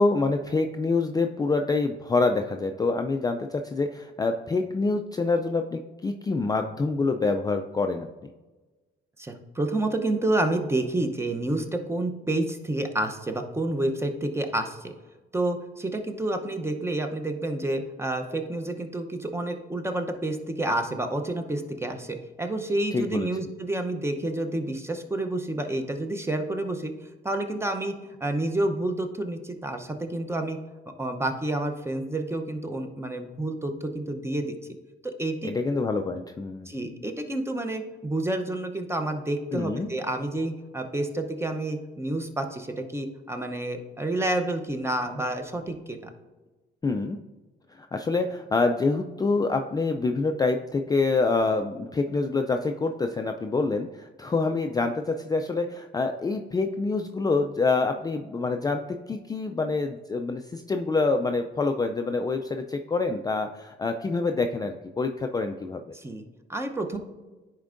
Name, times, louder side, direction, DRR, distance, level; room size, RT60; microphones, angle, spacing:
voice 1, 0.0-8.3 22.9-23.3 35.4-36.7 39.5-39.9 46.8-47.2 47.7-65.8, left 3 dB, 20° left, 5 dB, 0.3 m, -26 dB
voice 2, 9.2-14.9 15.3-26.9 27.2-30.6 31.0-34.5 35.0-35.5 36.7-46.0 65.9-66.2 66.5-67.0, right 1 dB, 15° right, 5 dB, 0.7 m, -29 dB
10.5 x 4.5 x 2.5 m, 1.2 s
cardioid pair, 90°, 20 cm